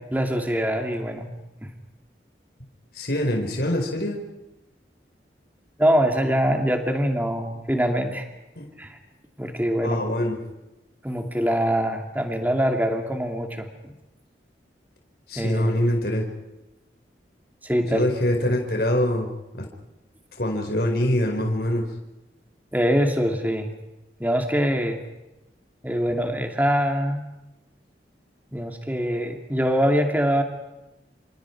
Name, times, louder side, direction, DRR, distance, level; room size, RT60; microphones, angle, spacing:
voice 1, 0.1-1.3 1.6-1.7 5.8-8.3 8.8-9.0 9.4-10.0 11.0-13.9 15.4-15.9 17.6-18.0 22.7-23.7 24.2-25.0 25.8-27.2 28.5-30.4, equal, 10° right, 4 dB, 2.6 m, -24 dB
voice 2, 2.9-4.2 8.5-8.7 9.8-10.4 15.3-16.3 17.9-19.3 19.6-19.7 20.3-21.9 26.1-26.2, left 1 dB, 60° left, 1 dB, 4.8 m, -24 dB
29.5 x 27.0 x 4.7 m, 0.96 s
head